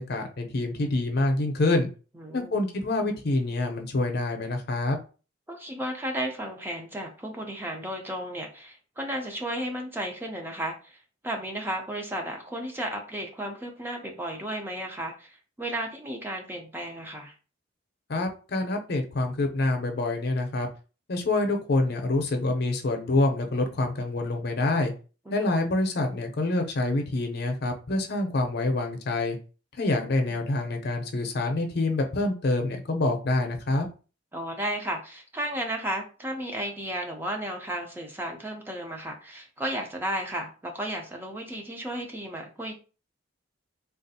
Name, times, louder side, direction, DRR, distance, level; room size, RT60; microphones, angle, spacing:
voice 1, 0.0-1.9 2.3-5.0 18.1-20.7 21.1-24.9 25.3-29.4 29.8-33.9, left 2 dB, 55° left, 4 dB, 0.6 m, -26 dB
voice 2, 2.2-2.5 5.5-11.0 11.2-17.3 25.3-25.5 30.2-30.4 34.3-42.8, right 1 dB, 10° right, 2 dB, 0.4 m, -34 dB
3.3 x 2.4 x 2.7 m, 0.35 s
head